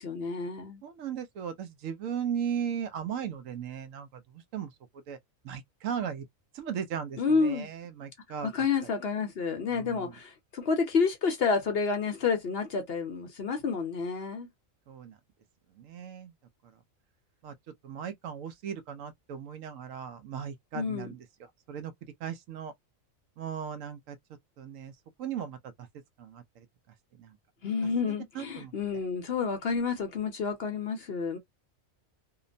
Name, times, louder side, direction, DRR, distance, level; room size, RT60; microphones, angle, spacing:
voice 1, 0.0-0.8 7.2-7.7 8.4-14.5 20.7-21.1 27.6-31.4, left 5 dB, 55° left, 0.8 m, -29 dB
voice 2, 0.8-4.7 5.1-5.2 5.4-6.3 6.5-8.5 9.7-10.1 14.9-15.2 15.8-16.3 17.4-17.5 17.8-21.9 22.2-22.7 23.4-24.2 24.6-24.9 25.2-25.9 26.2-26.7 27.2-27.4 27.8-28.7, right 8 dB, 75° right, 0.9 m, -37 dB
2.8 x 2.0 x 2.5 m
omnidirectional pair, 1.4 m